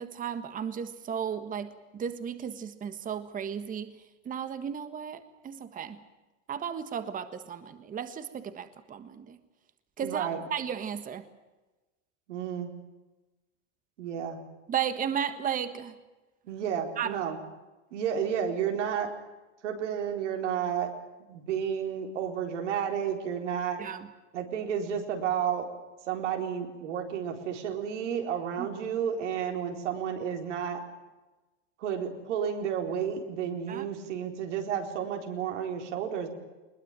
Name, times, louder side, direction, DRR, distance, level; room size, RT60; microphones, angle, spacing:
voice 1, 0.0-3.9 4.2-6.0 6.5-9.4 10.0-11.2 14.7-15.9 17.0-17.2 23.8-24.1 28.6-29.0 33.7-33.9, right 8 dB, 25° right, 10 dB, 1.5 m, -34 dB
voice 2, 10.0-10.4 12.3-12.7 14.0-14.4 16.4-17.4 17.9-19.1 19.6-20.9 21.3-23.8 24.3-25.6 26.1-30.8 31.8-36.3, right 8 dB, 80° right, 3 dB, 4.3 m, -31 dB
21.0 x 20.5 x 9.2 m, 1.1 s
supercardioid pair, 125°, 35 cm